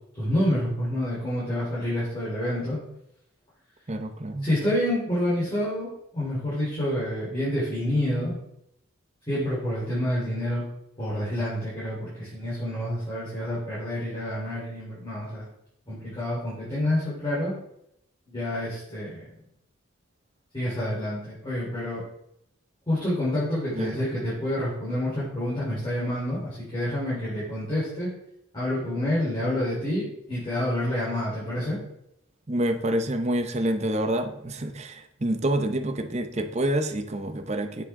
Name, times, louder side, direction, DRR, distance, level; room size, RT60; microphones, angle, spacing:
voice 1, 0.2-2.8 4.4-8.4 9.3-10.7 11.0-15.4 15.9-17.5 18.3-19.3 20.5-22.0 22.9-28.1 28.5-31.8, left 1 dB, 20° left, -10 dB, 3.6 m, -28 dB
voice 2, 3.9-4.5 23.7-24.0 32.5-37.8, right 1 dB, 30° right, 7 dB, 0.7 m, -27 dB
8.0 x 7.4 x 3.7 m, 0.78 s
head